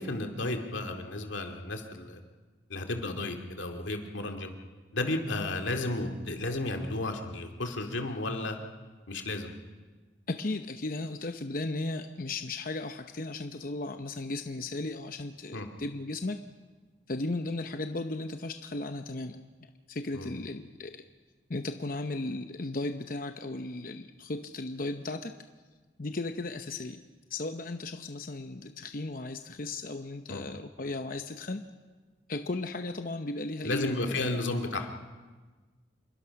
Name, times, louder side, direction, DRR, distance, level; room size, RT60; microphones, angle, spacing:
voice 1, 0.0-2.2 2.7-4.5 4.9-8.6 9.1-9.5 15.5-15.7 20.1-20.3 30.3-30.4 33.6-34.9, left 2 dB, 90° left, 4 dB, 2.4 m, -33 dB
voice 2, 10.3-16.4 17.1-19.4 19.9-21.0 21.5-25.3 26.0-27.0 27.3-31.6 32.3-34.4, left 2 dB, 50° left, 7 dB, 0.8 m, -35 dB
27.5 x 22.5 x 5.9 m, 1.4 s
head